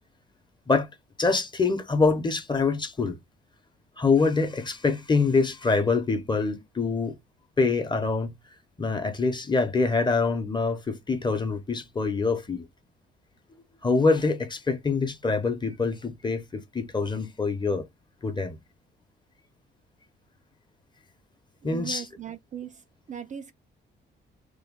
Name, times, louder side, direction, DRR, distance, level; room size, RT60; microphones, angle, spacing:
voice 1, 1.2-3.2 4.0-7.2 7.6-8.4 8.8-12.6 13.8-17.8 18.2-18.6 21.6-22.1, left 4 dB, 20° left, 0.9 m, -25 dB
voice 2, 21.6-22.8 23.1-23.5, right 9 dB, 40° right, 0.4 m, -38 dB
3.1 x 2.2 x 3.8 m
cardioid pair, 90°, 20 cm